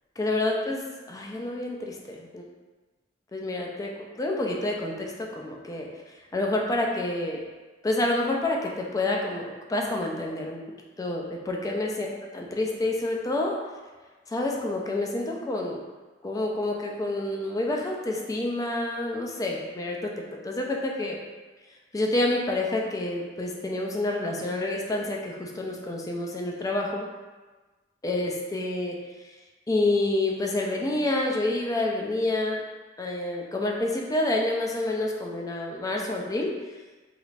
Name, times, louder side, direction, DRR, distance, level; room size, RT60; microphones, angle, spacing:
voice 1, 0.2-0.8 1.1-2.4 3.3-5.9 6.3-7.4 7.8-10.6 11.0-13.6 14.3-15.8 16.2-21.2 21.9-27.1 28.0-29.0 29.7-32.6 33.0-36.5, left 2 dB, 20° left, 0 dB, 0.4 m, -28 dB
3.2 x 3.1 x 2.4 m, 1.3 s
head